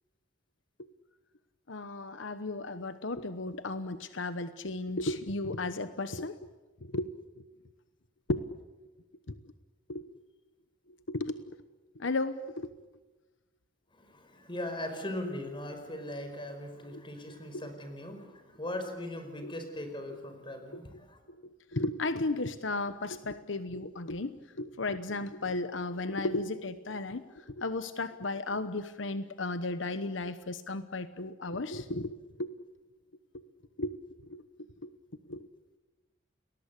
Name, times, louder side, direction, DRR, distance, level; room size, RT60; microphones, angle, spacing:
voice 1, 1.7-6.4 6.8-7.1 8.3-8.4 9.3-9.4 9.9-10.1 11.1-11.6 12.0-12.7 16.9-17.0 19.4-19.5 20.7-20.8 21.4-24.3 24.6-32.5 33.3-33.4 33.8-33.9 34.2-34.4 34.8-34.9 35.3-35.5, left 2 dB, 80° left, 11 dB, 1.1 m, -34 dB
voice 2, 13.9-21.2, left 1 dB, 25° left, 7 dB, 5.2 m, -39 dB
30.0 x 20.5 x 8.4 m, 1.2 s
head